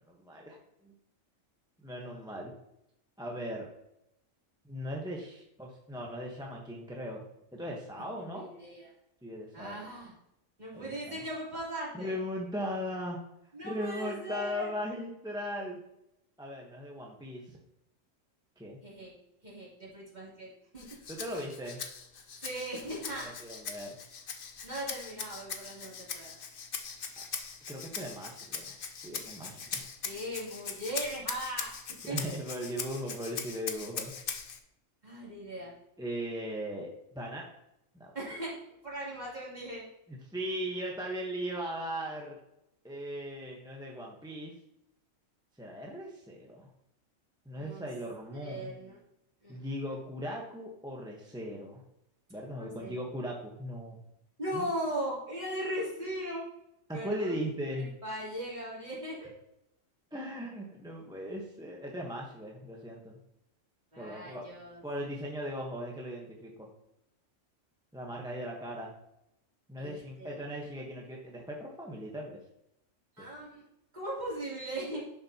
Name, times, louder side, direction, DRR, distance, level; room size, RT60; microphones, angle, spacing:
voice 1, 0.1-0.6 0.8-0.9 1.8-2.5 3.2-3.7 4.7-7.2 7.5-8.5 9.2-9.8 10.7-11.2 11.9-13.2 13.6-15.8 16.4-17.6 18.6-18.8 21.1-21.8 23.2-24.0 27.2-27.3 27.7-29.9 32.0-34.1 36.0-37.5 37.9-38.1 40.1-42.4 42.8-44.5 45.6-46.7 47.5-48.7 49.5-51.8 52.3-54.0 54.5-54.7 56.9-57.9 60.1-63.2 64.0-64.4 64.8-66.7 67.9-68.9 69.7-72.4 73.2-73.3, equal, 5° right, -2 dB, 1.0 m, -38 dB
voice 2, 8.2-8.9 9.5-10.1 10.6-12.1 13.5-14.7 18.8-19.1 19.4-20.9 22.4-23.3 24.6-26.3 30.0-32.2 35.0-35.7 38.1-38.5 38.8-39.8 47.5-47.8 48.4-49.0 49.4-49.6 52.6-53.0 54.4-56.4 56.9-57.4 57.8-59.3 63.9-64.8 69.8-70.4 73.2-73.6 73.9-75.0, right 1 dB, 35° right, -7 dB, 3.3 m, -38 dB
Rattle (instrument), 20.8-34.6, left 6 dB, 50° left, 0.9 m, -41 dB
11.0 x 6.7 x 2.9 m, 0.83 s
omnidirectional pair, 1.3 m